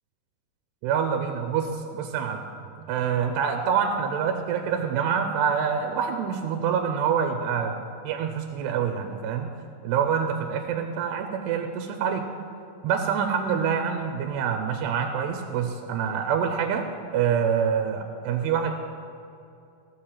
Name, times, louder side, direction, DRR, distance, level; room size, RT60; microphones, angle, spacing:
voice 1, 0.8-2.4 2.8-9.5 9.8-12.2 12.8-16.9 17.1-18.8, right 7 dB, 85° right, 5 dB, 2.8 m, -26 dB
15.0 x 7.4 x 7.2 m, 2.7 s
omnidirectional pair, 4.7 m